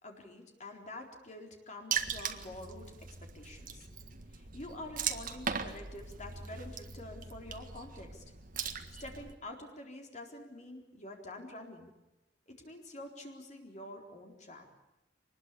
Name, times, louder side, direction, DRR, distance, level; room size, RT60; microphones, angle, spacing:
voice 1, 0.0-2.9 3.2-3.9 4.3-8.2 9.0-11.9 12.5-14.7, left 1 dB, 40° left, 2 dB, 4.1 m, -47 dB
Water / Splash splatter, 1.9-9.3, right 7 dB, 50° right, 1.7 m, -39 dB
24.0 x 20.5 x 8.4 m, 1.0 s
head